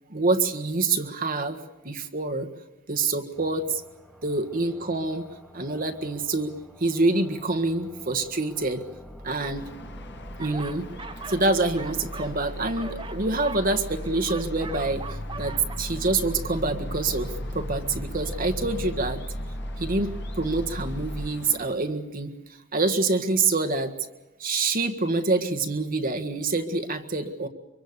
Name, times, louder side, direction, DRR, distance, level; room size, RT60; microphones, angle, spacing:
voice 1, 0.1-1.6 1.9-2.5 2.9-3.8 4.2-5.2 5.5-6.5 6.8-8.8 9.2-9.7 10.4-10.9 11.3-15.0 15.4-17.3 17.5-19.2 19.8-20.1 20.4-22.3 22.7-23.9 24.4-27.5, right 3 dB, 45° right, 6 dB, 1.7 m, -26 dB
sound 1, 3.3-21.3, equal, 5° left, 1.9 m, -38 dB
sound 2, 9.5-21.7, left 2 dB, 60° left, 1.8 m, -43 dB
sound 3, 10.4-11.5 11.7-15.8, right 4 dB, 25° right, 1.0 m, -40 dB
24.5 x 24.0 x 6.8 m, 1.1 s
head